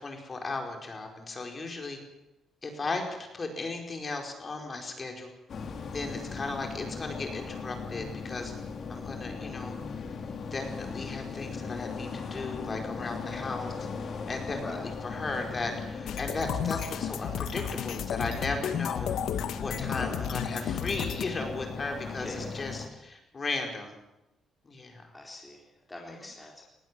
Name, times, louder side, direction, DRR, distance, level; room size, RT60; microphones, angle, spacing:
voice 1, 0.0-2.0 2.6-3.0 3.3-5.3 5.9-8.5 8.9-9.7 10.5-13.7 14.3-19.2 19.6-24.0 24.6-25.1, left 3 dB, 35° left, 3 dB, 5.0 m, -36 dB
sound 1, 5.5-22.9, left 5 dB, 55° left, 3.3 m, -38 dB
voice 2, 9.4-9.8 14.6-14.9 19.9-20.3 22.1-22.6 25.1-26.6, left 1 dB, 15° left, -1 dB, 4.0 m, -43 dB
sound 2, 16.1-21.2, left 9 dB, 80° left, 1.5 m, -33 dB
19.5 x 16.5 x 9.4 m, 0.93 s
cardioid pair, 90°, 0 cm